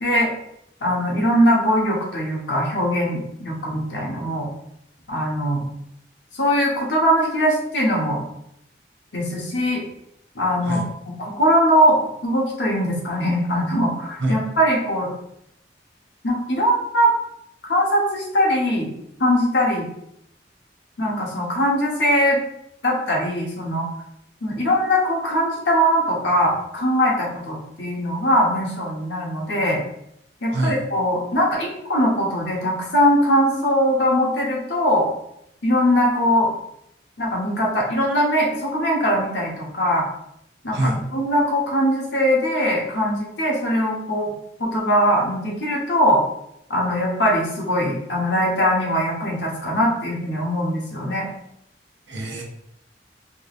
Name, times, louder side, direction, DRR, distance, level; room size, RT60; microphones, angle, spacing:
voice 1, 0.8-4.5 5.1-5.6 6.3-8.2 9.1-9.8 10.3-10.9 11.2-12.0 12.2-15.1 16.2-17.1 17.7-18.9 19.2-19.8 21.0-22.4 22.8-23.9 24.4-29.8 30.4-35.1 35.6-36.5 37.2-40.1 40.6-40.8 41.1-44.3 44.6-46.2 46.7-51.3, equal, 75° left, -3 dB, 1.0 m, -21 dB
voice 2, 40.7-41.0 52.1-52.4, right 1 dB, 75° right, -1 dB, 0.8 m, -24 dB
3.6 x 2.9 x 2.4 m, 0.77 s
head